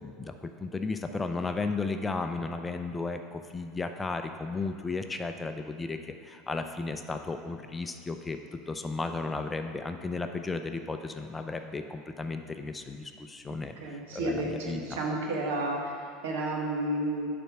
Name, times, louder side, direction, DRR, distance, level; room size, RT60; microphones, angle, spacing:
voice 1, 0.0-6.0 6.2-8.4 8.7-14.8, left 3 dB, 15° left, 7 dB, 0.5 m, -34 dB
voice 2, 13.5-17.3, right 1 dB, 85° right, 0 dB, 1.5 m, -32 dB
9.2 x 4.3 x 5.9 m, 2.4 s
supercardioid pair, 115°, 0 cm